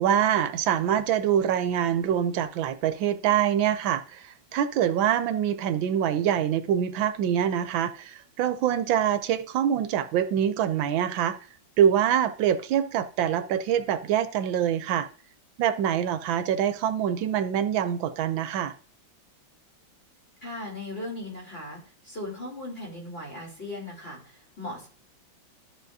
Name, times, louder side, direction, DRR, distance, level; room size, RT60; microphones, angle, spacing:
voice 1, 0.0-11.4 11.8-15.1 15.6-18.7, right 9 dB, 80° right, 11 dB, 1.4 m, -25 dB
voice 2, 20.4-24.9, left 1 dB, 30° left, -2 dB, 3.4 m, -38 dB
13.0 x 6.5 x 2.7 m, 0.42 s
omnidirectional pair, 2.1 m